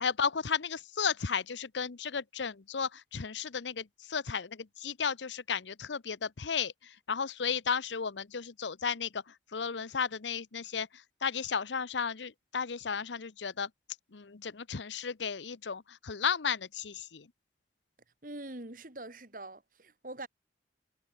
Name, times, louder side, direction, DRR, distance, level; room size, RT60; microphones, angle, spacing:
voice 1, 0.0-6.7 7.1-9.2 9.5-10.9 11.2-13.7 14.1-17.2, left 6 dB, 90° left, 0.8 m, -34 dB
voice 2, 18.2-20.3, right 2 dB, 50° right, 2.7 m, -44 dB
head